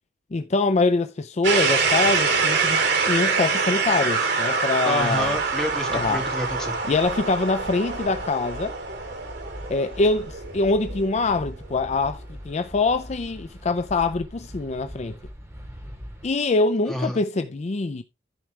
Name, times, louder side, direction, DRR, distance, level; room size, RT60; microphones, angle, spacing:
voice 1, 0.3-2.8 3.1-5.4 5.9-6.2 6.9-8.8 9.7-15.1 16.2-18.0, left 3 dB, 40° left, 0.5 m, -24 dB
sound 1, 1.4-11.3, right 4 dB, 80° right, 2.5 m, -25 dB
voice 2, 4.8-6.8 16.9-17.2, left 1 dB, 5° left, 2.2 m, -29 dB
sound 2, 5.0-16.3, equal, 15° right, 2.2 m, -42 dB
14.0 x 4.7 x 3.2 m
head